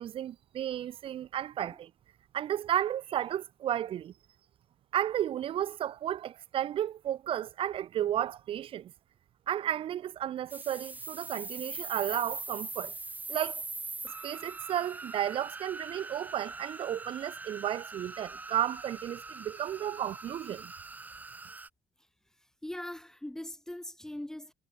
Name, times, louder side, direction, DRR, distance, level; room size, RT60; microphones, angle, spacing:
voice 1, 0.0-1.9 2.3-4.1 4.9-8.9 9.5-12.9 13.3-13.6 14.0-20.7, right 11 dB, 45° right, 1.9 m, -33 dB
sound 1, 10.5-21.7, right 3 dB, 10° right, 2.0 m, -42 dB
voice 2, 22.6-24.5, left 1 dB, 5° left, 1.4 m, -41 dB
cardioid pair, 175°, 13 cm